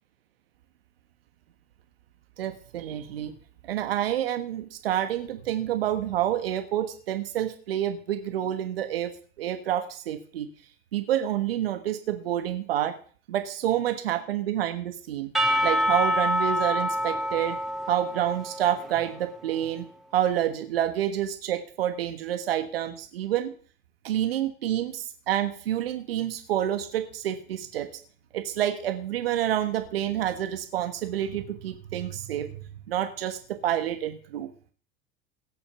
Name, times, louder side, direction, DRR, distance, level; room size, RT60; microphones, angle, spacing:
voice 1, 2.4-3.3 3.7-10.5 10.9-12.9 13.3-15.3 15.6-17.6 17.9-19.8 20.1-23.5 24.0-27.9 28.3-32.6 32.9-34.5, right 11 dB, 80° right, 8 dB, 1.4 m, -28 dB
Percussion / Church bell, 15.3-19.3, equal, ahead, 2.5 m, -27 dB
17.5 x 7.1 x 6.9 m, 0.43 s
hypercardioid pair, 85°, 29 cm